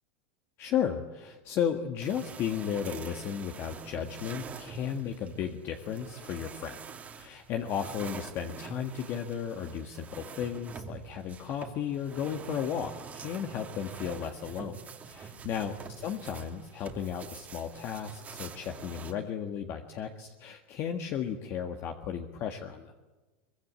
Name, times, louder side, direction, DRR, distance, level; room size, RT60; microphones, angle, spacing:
voice 1, 0.6-6.8 7.1-14.8 15.1-22.9, left 8 dB, 40° left, 4 dB, 1.7 m, -34 dB
sound 1, 2.0-19.1, right 6 dB, 25° right, 2.5 m, -45 dB
23.0 x 22.5 x 8.5 m, 1.2 s
supercardioid pair, 140°, 6 cm